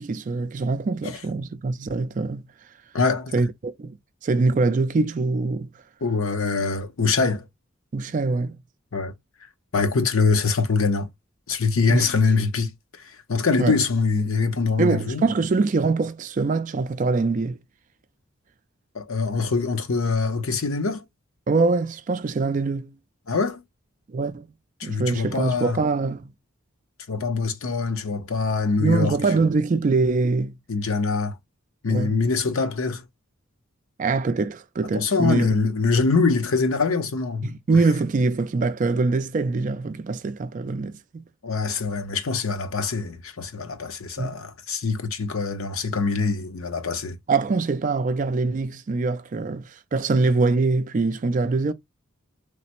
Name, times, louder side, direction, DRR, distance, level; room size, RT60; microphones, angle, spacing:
voice 1, 0.0-2.4 3.3-4.0 4.2-5.7 7.9-8.6 11.9-12.1 13.6-13.8 14.8-17.6 21.5-22.9 24.1-24.5 24.8-26.3 28.8-30.6 31.9-32.2 34.0-35.5 37.4-41.2 44.2-44.5 47.3-51.7, right 3 dB, 35° right, 0.3 m, -23 dB
voice 2, 2.9-3.3 6.0-7.4 8.9-9.1 9.7-11.1 11.5-15.2 18.9-21.0 23.3-23.6 24.8-25.8 27.1-29.2 30.7-31.4 31.8-33.0 34.9-37.8 41.4-47.2, left 4 dB, 80° left, 0.7 m, -24 dB
3.2 x 2.0 x 2.9 m
head